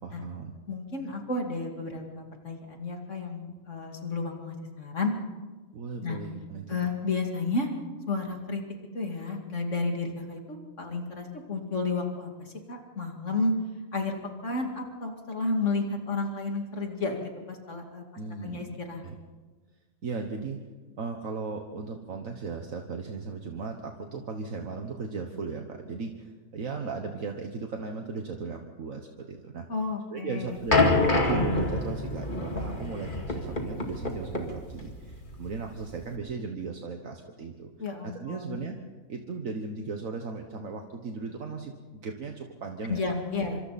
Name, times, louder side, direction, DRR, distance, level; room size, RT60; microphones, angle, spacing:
voice 1, 0.0-0.5 5.7-6.8 18.2-18.8 19.0-19.1 20.0-20.6 21.0-29.7 30.1-38.8 39.1-43.2 43.5-43.6, right 4 dB, 70° right, 4 dB, 1.7 m, -37 dB
voice 2, 0.7-5.1 6.0-6.2 6.7-7.7 8.1-8.6 8.9-13.5 13.9-14.2 14.4-18.0 18.4-19.0 29.7-30.6 37.8-38.6 42.9-43.6, left 3 dB, 60° left, 2 dB, 2.8 m, -32 dB
sound 1, 30.7-36.1, left 2 dB, 35° left, 2.4 m, -27 dB
26.0 x 25.5 x 4.2 m, 1.3 s
omnidirectional pair, 1.5 m